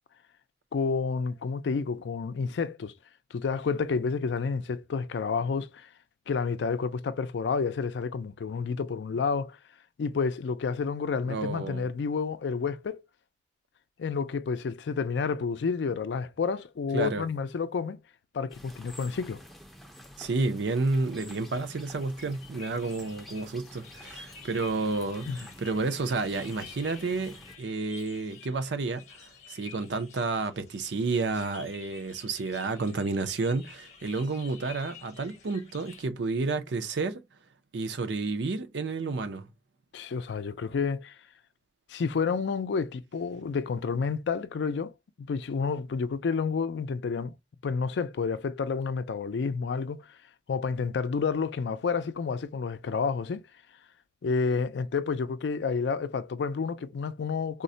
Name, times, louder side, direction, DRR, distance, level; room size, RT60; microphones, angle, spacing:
voice 1, 0.7-2.9 3.3-5.9 6.3-9.6 10.0-13.0 14.0-18.0 18.3-19.4 25.3-25.4 39.9-41.1 41.9-44.9 45.2-47.3 47.6-50.1 50.5-53.4 54.2-57.6, left 5 dB, 80° left, 0.4 m, -30 dB
voice 2, 11.3-11.9 16.9-17.3 20.2-37.2 37.7-39.5, right 3 dB, 80° right, 0.5 m, -31 dB
sound 1, 18.5-27.6, equal, ahead, 0.4 m, -50 dB
sound 2, 20.9-36.1, left 6 dB, 40° left, 0.7 m, -51 dB
3.7 x 2.1 x 2.6 m
head